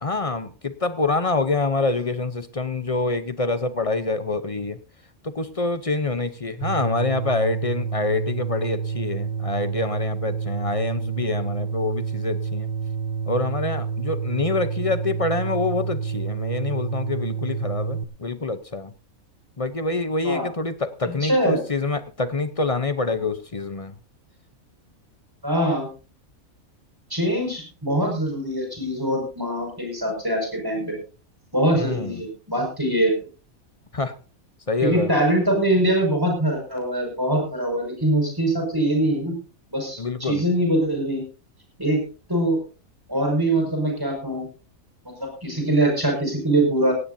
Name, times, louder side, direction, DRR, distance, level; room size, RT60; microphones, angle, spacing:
voice 1, 0.0-4.8 5.2-12.7 13.2-18.9 19.6-24.0 31.7-32.2 33.9-34.2 34.7-35.1 40.0-40.4, left 3 dB, 30° left, 12 dB, 0.7 m, -26 dB
sound 1, 6.6-18.0, right 6 dB, 80° right, 1.3 m, -28 dB
voice 2, 21.2-21.6 25.4-25.9 27.1-31.0 31.5-33.1 34.8-39.3 39.7-41.2 41.8-42.0 42.3-42.6 43.1-44.5 45.0-46.9, right 1 dB, 15° right, 2 dB, 6.0 m, -23 dB
17.5 x 16.5 x 2.7 m, 0.34 s
omnidirectional pair, 1.5 m